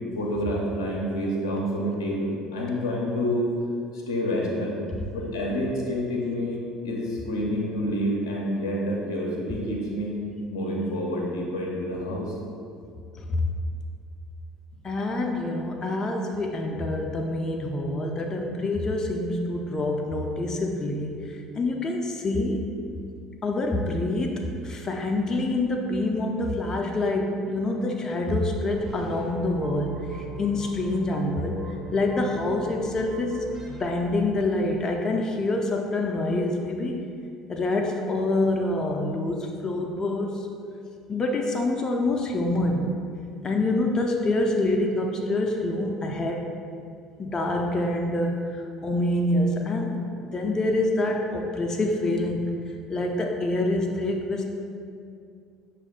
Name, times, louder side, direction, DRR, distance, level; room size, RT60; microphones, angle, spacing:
voice 1, 0.2-3.5 3.9-4.7 5.1-10.1 10.5-12.3, equal, 80° left, -2 dB, 0.6 m, -28 dB
voice 2, 14.8-22.7 23.4-31.6 31.9-37.0 37.5-40.4 41.1-42.9 43.4-46.5 47.2-48.4 48.8-52.4 52.9-54.4, left 2 dB, 30° left, 1 dB, 0.5 m, -26 dB
sound 1, 28.7-34.8, right 3 dB, 25° right, 0.8 m, -42 dB
6.1 x 2.4 x 3.6 m, 2.4 s
figure-of-eight pair, 60°, 2 cm